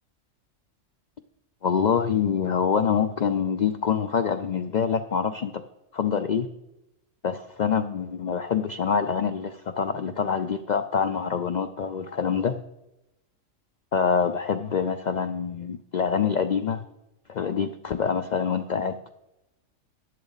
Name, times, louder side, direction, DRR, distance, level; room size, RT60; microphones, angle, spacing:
voice 1, 1.6-5.6 5.9-6.5 7.2-12.6 13.9-16.8 17.3-19.1, left 6 dB, 75° left, 9 dB, 0.4 m, -25 dB
13.0 x 11.0 x 4.0 m, 0.93 s
omnidirectional pair, 1.3 m